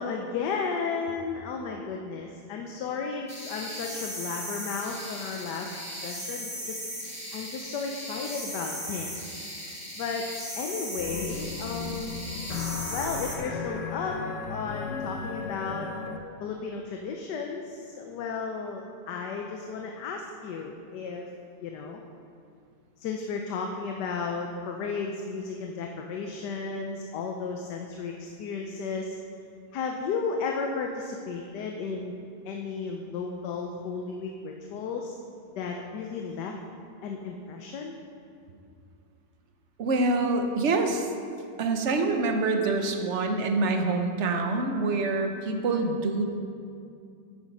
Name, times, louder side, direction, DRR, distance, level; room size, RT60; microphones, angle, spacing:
voice 1, 0.0-5.8 6.0-6.8 7.3-9.3 9.6-10.3 10.6-12.2 12.9-14.2 14.5-15.9 16.4-21.3 21.6-22.0 23.0-29.2 29.7-32.1 32.4-35.1 35.6-36.5 37.0-37.9, left 5 dB, 85° left, 2 dB, 1.4 m, -34 dB
sound 1, 3.3-13.4, equal, 5° right, 1.8 m, -37 dB
sound 2, 11.0-16.2, left 5 dB, 55° left, 1.1 m, -35 dB
voice 2, 39.8-41.1 41.6-46.3, right 3 dB, 50° right, 5 dB, 1.1 m, -26 dB
10.0 x 9.0 x 5.4 m, 2.4 s
omnidirectional pair, 1.8 m